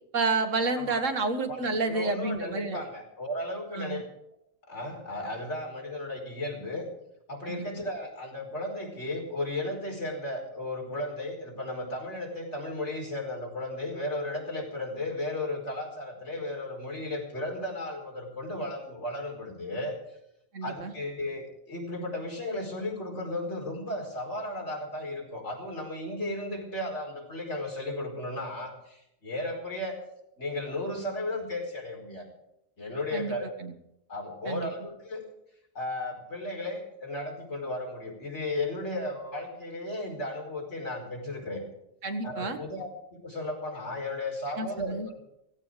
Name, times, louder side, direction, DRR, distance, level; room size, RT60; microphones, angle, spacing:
voice 1, 0.1-2.9 3.7-4.0 7.4-7.7 20.5-20.9 33.1-33.7 34.5-34.7 42.0-42.6 44.6-45.1, right 3 dB, 70° right, 7 dB, 1.9 m, -30 dB
voice 2, 1.5-4.0 4.7-6.9 7.3-20.0 20.6-30.0 30.4-32.2 32.8-33.5 34.1-35.2 35.7-41.6 42.2-45.2, left 1 dB, 60° left, 0 dB, 5.1 m, -35 dB
17.0 x 16.0 x 4.9 m, 0.79 s
omnidirectional pair, 1.4 m